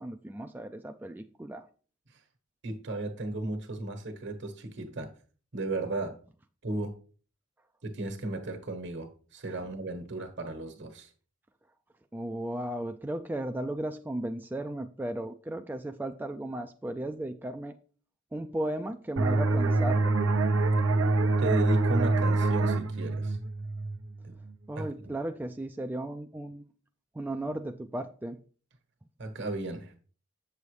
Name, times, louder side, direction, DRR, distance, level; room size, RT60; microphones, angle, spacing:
voice 1, 0.0-1.7 12.1-17.8 18.3-20.2 24.7-26.7 27.1-28.4, right 1 dB, 10° right, 0.3 m, -35 dB
voice 2, 2.6-5.1 5.5-6.1 6.6-6.9 7.8-11.1 21.4-23.4 24.2-24.3 24.7-24.9 29.2-29.9, right 2 dB, 65° right, 1.3 m, -34 dB
sound 1, 19.2-24.5, right 3 dB, 90° right, 0.8 m, -26 dB
8.0 x 6.9 x 3.2 m
head